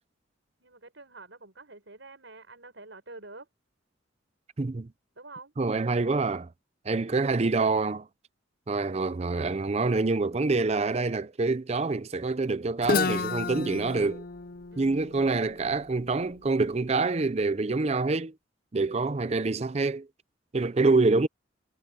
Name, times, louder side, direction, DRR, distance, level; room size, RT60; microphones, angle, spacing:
voice 1, 0.6-3.5 5.2-5.5 14.7-15.0, right 3 dB, 70° right, 5.8 m, -47 dB
voice 2, 4.6-4.9 5.6-6.5 6.9-8.1 8.7-14.2 14.8-18.3 18.7-20.1 20.5-21.3, right 3 dB, 35° right, 0.5 m, -26 dB
Guitar, 12.8-16.6, left 4 dB, 50° left, 0.6 m, -32 dB
head